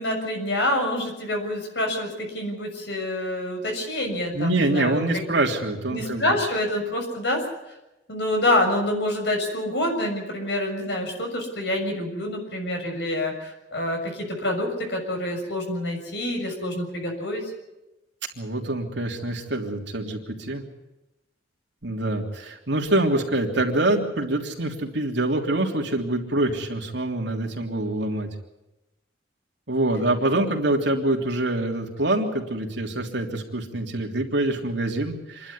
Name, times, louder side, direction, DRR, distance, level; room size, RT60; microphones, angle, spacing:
voice 1, 0.0-5.2 5.9-7.5 8.1-17.5 30.3-30.4, left 1 dB, 65° left, 3 dB, 6.8 m, -27 dB
voice 2, 4.3-6.3 18.3-20.6 21.8-28.3 29.7-35.5, right 2 dB, 70° right, 1 dB, 3.2 m, -25 dB
27.5 x 12.0 x 9.9 m, 0.98 s
head